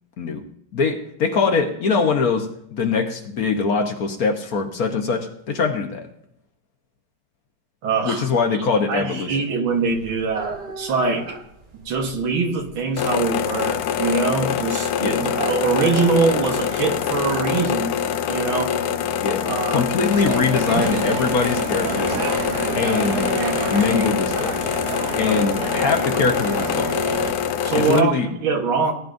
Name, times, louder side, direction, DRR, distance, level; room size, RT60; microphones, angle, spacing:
voice 1, 0.7-6.1 8.0-9.4 15.0-15.2 19.2-19.4 19.7-22.2 22.8-23.4 23.7-24.6 25.2-26.9 27.7-28.3, left 5 dB, 55° left, 4 dB, 1.2 m, -22 dB
voice 2, 7.8-8.3 8.9-11.4 11.9-17.9 18.3-18.8 19.4-19.9 27.6-28.9, right 4 dB, 90° right, 3 dB, 2.1 m, -23 dB
sound 1, 9.7-28.1, right 3 dB, 40° right, 0.5 m, -38 dB
sound 2, 13.0-28.0, left 8 dB, 70° left, 0.9 m, -24 dB
sound 3, 20.1-27.3, right 8 dB, 65° right, 1.1 m, -29 dB
18.5 x 10.5 x 2.6 m, 0.73 s
omnidirectional pair, 2.1 m